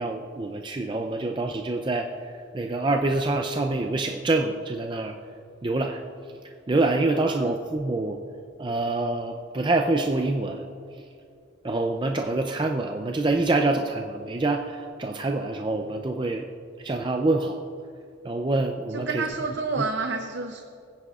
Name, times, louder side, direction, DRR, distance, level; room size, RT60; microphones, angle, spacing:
voice 1, 0.0-5.1 5.6-6.0 6.7-8.2 8.6-10.6 11.6-16.5 16.8-17.6 18.2-19.2, right 2 dB, 25° right, 4 dB, 0.4 m, -26 dB
voice 2, 7.2-7.5 18.9-20.6, right 4 dB, 65° right, 4 dB, 0.6 m, -29 dB
19.0 x 9.9 x 2.4 m, 2.4 s
head